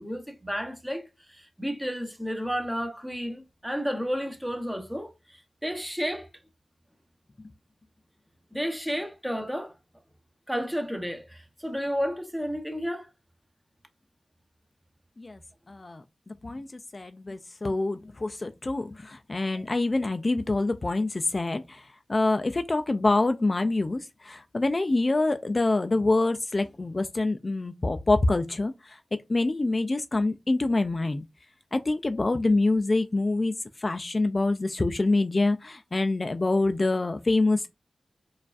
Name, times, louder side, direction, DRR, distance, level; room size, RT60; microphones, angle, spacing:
voice 1, 0.0-6.3 8.5-9.7 10.5-13.1, equal, 5° right, 0.8 m, -32 dB
voice 2, 15.7-29.0 29.3-31.3 31.7-37.7, left 2 dB, 40° left, 0.3 m, -26 dB
4.5 x 2.4 x 2.4 m
cardioid pair, 55°, 0 cm